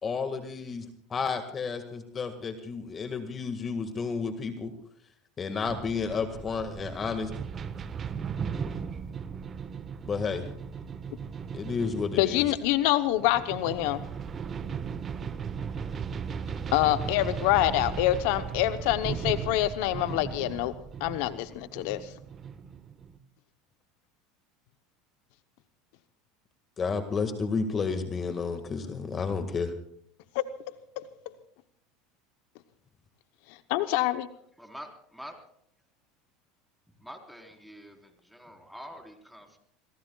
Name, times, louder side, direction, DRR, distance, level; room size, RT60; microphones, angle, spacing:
voice 1, 0.0-4.7 5.4-7.3 10.1-10.5 11.5-12.5 26.8-29.7, left 5 dB, 30° left, 8 dB, 1.8 m, -31 dB
sound 1, 5.7-23.2, right 6 dB, 35° right, 1.3 m, -37 dB
voice 2, 12.2-14.0 16.7-20.7 21.0-22.1 30.3-30.5 31.0-31.1 33.7-34.3, left 15 dB, 70° left, 11 dB, 0.8 m, -26 dB
voice 3, 34.6-35.3 37.0-39.6, equal, ahead, 3 dB, 4.1 m, -46 dB
28.5 x 19.0 x 2.4 m, 0.66 s
hypercardioid pair, 90°, 0 cm